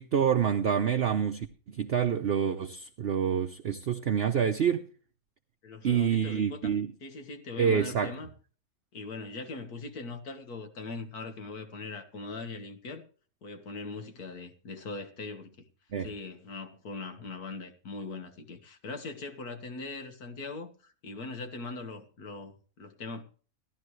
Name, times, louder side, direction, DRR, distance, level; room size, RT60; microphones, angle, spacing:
voice 1, 0.0-4.8 5.8-6.9 7.6-8.1 15.9-16.1, right 8 dB, 50° right, 0.8 m, -27 dB
voice 2, 5.6-6.8 7.0-8.3 8.9-13.0 13.4-15.7 16.0-23.2, left 3 dB, 85° left, 2.1 m, -41 dB
17.0 x 11.5 x 3.2 m
omnidirectional pair, 1.6 m